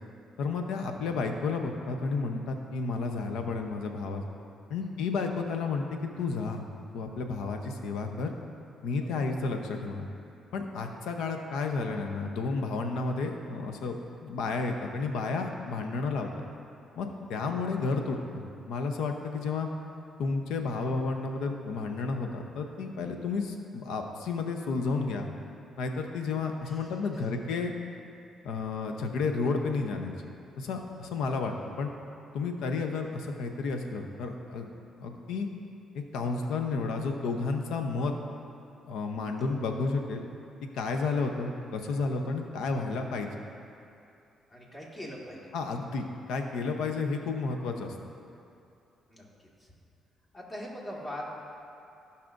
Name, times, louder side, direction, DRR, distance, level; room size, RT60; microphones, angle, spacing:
voice 1, 0.4-4.3 4.7-6.7 6.9-8.3 8.8-10.1 10.5-16.3 17.0-19.7 20.2-25.3 25.8-27.7 28.4-30.1 30.6-31.9 32.3-34.7 35.0-35.5 35.9-38.1 38.9-40.2 40.7-43.3 45.5-47.9, left 4 dB, 85° left, 4 dB, 0.7 m, -31 dB
voice 2, 17.3-17.7 26.6-27.2 39.5-39.6 44.5-45.4 49.1-49.3 49.6-49.7 50.3-51.2, left 1 dB, 20° left, -4 dB, 2.0 m, -43 dB
15.5 x 5.8 x 2.6 m, 2.7 s
cardioid pair, 90°, 0 cm